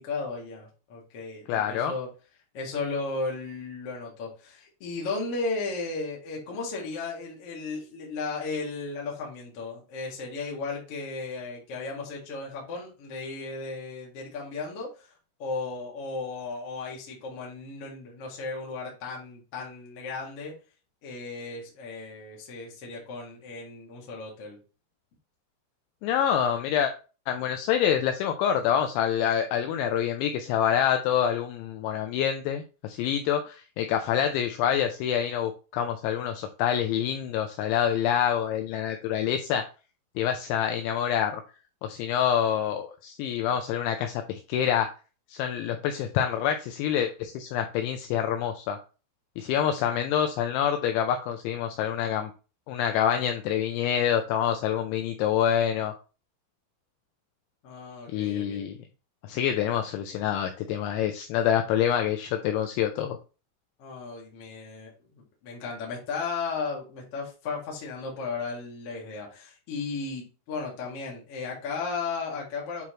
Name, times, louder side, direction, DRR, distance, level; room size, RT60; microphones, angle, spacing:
voice 1, 0.0-2.1 2.5-15.1 15.4-20.6 21.0-24.6 57.6-58.6 63.8-72.8, left 4 dB, 55° left, -2 dB, 1.7 m, -35 dB
voice 2, 1.5-1.9 26.0-26.9 27.3-39.6 40.2-41.4 41.8-44.9 45.3-48.8 49.4-52.3 52.7-55.9 58.1-58.8 59.3-63.2, left 9 dB, 85° left, 6 dB, 2.7 m, -26 dB
9.2 x 4.1 x 3.1 m, 0.34 s
omnidirectional pair, 5.9 m